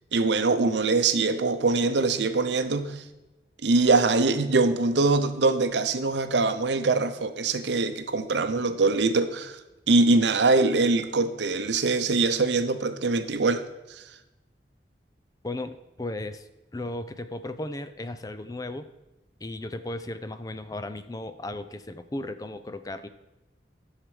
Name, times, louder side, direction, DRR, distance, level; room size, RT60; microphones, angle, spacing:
voice 1, 0.1-3.0 3.6-9.6 9.9-13.6, right 3 dB, 80° right, 10 dB, 0.7 m, -23 dB
voice 2, 15.4-16.5 16.7-18.9 19.4-23.1, left 2 dB, 20° left, 11 dB, 0.5 m, -35 dB
11.0 x 6.5 x 4.9 m, 1.0 s
head